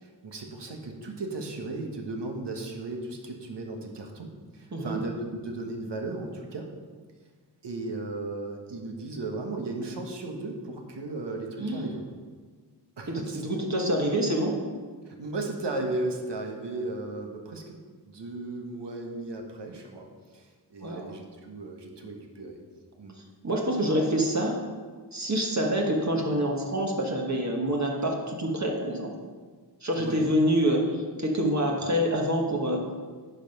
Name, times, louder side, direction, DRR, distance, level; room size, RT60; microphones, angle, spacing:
voice 1, 0.0-6.7 7.6-12.0 13.0-13.4 15.0-17.8 18.0-20.1 20.3-22.6 23.0-23.2 30.0-30.3, right 2 dB, 75° right, 2 dB, 1.4 m, -35 dB
voice 2, 4.7-5.0 11.6-11.9 13.1-14.6 20.8-21.1 23.4-24.6 25.1-29.1 29.8-32.8, equal, 40° right, 0 dB, 1.3 m, -26 dB
10.5 x 5.5 x 5.4 m, 1.5 s
wide cardioid pair, 100°, 43 cm